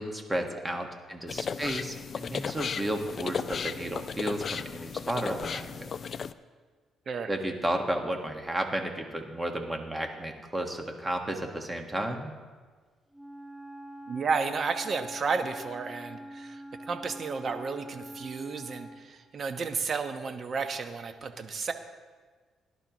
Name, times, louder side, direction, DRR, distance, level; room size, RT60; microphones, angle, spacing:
voice 1, 0.0-5.9 7.3-12.3, right 1 dB, 20° right, 3 dB, 1.6 m, -33 dB
sound 1, 1.3-6.3, left 6 dB, 50° left, 0.4 m, -35 dB
Wind instrument woodwind instrument, 13.1-19.2, equal, ahead, 1.0 m, -44 dB
voice 2, 14.1-21.7, right 5 dB, 50° right, 7 dB, 1.1 m, -32 dB
18.0 x 11.0 x 3.1 m, 1.5 s
cardioid pair, 90°, 0 cm